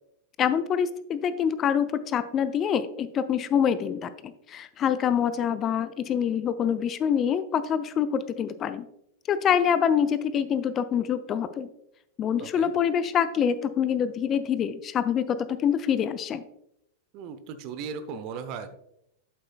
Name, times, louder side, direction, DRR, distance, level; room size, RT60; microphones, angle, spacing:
voice 1, 0.4-8.8 9.3-11.7 12.2-16.4, left 8 dB, 30° left, 13 dB, 0.4 m, -25 dB
voice 2, 12.4-12.7 17.1-18.7, right 6 dB, 40° right, 10 dB, 0.7 m, -37 dB
8.3 x 7.6 x 2.3 m, 0.78 s
figure-of-eight pair, 90°, 0 cm